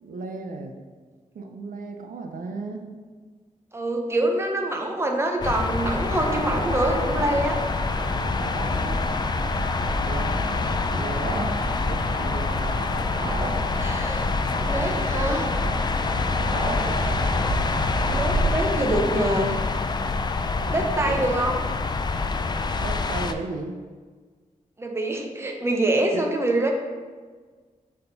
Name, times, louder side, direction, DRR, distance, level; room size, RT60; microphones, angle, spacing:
voice 1, 0.0-0.8 1.3-2.9 8.5-9.3 10.0-10.7 11.0-11.4 11.9-12.9 14.9-15.7 16.7-17.2 20.6-20.7 21.1-21.2 22.6-23.7 26.1-26.2, right 3 dB, 75° right, 4 dB, 0.6 m, -36 dB
voice 2, 3.7-7.6 13.8-14.3 14.6-15.4 16.9-17.3 18.0-19.5 20.7-21.6 24.8-26.7, right 1 dB, 20° right, 2 dB, 0.7 m, -25 dB
sound 1, 5.4-23.3, left 3 dB, 30° left, 0.3 m, -26 dB
sound 2, 5.8-18.5, right 2 dB, 55° right, 1.4 m, -32 dB
6.7 x 3.7 x 4.0 m, 1.5 s
wide cardioid pair, 110°, 14 cm